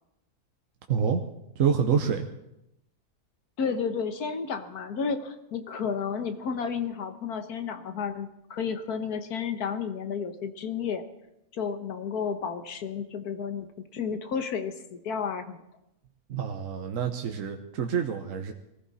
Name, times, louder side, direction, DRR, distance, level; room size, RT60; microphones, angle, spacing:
voice 1, 0.9-1.2 1.6-2.3 16.3-18.5, right 7 dB, 60° right, 4 dB, 1.3 m, -27 dB
voice 2, 3.6-11.0 11.5-15.6, left 6 dB, 80° left, 8 dB, 1.7 m, -32 dB
22.5 x 15.0 x 4.2 m, 0.86 s
omnidirectional pair, 1.6 m